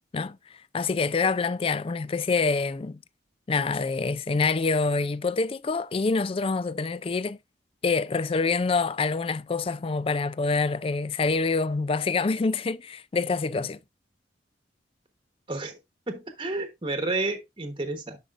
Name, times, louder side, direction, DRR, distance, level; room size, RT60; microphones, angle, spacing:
voice 1, 0.7-3.0 3.5-7.4 7.8-13.8, left 4 dB, 30° left, 0.3 m, -26 dB
voice 2, 16.1-18.2, right 2 dB, 25° right, 1.1 m, -30 dB
10.5 x 5.2 x 2.5 m
head